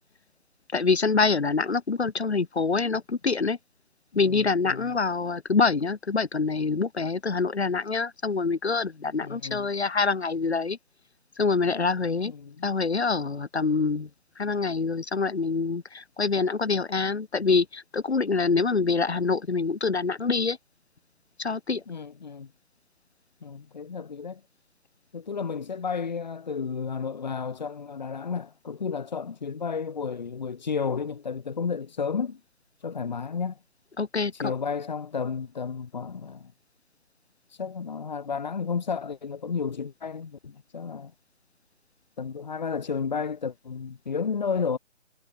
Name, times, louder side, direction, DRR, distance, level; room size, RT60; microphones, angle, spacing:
voice 1, 0.7-3.6 4.2-10.8 11.4-12.3 12.6-14.1 14.4-20.6 21.4-21.8 34.0-34.5, left 4 dB, 55° left, 7.2 m, -25 dB
voice 2, 4.1-4.9 9.2-9.7 12.2-12.7 21.9-22.5 23.4-24.4 25.1-32.4 32.8-33.6 34.3-36.5 37.6-41.1 42.2-44.8, left 5 dB, 35° left, 6.3 m, -32 dB
hypercardioid pair, 180°, 38 cm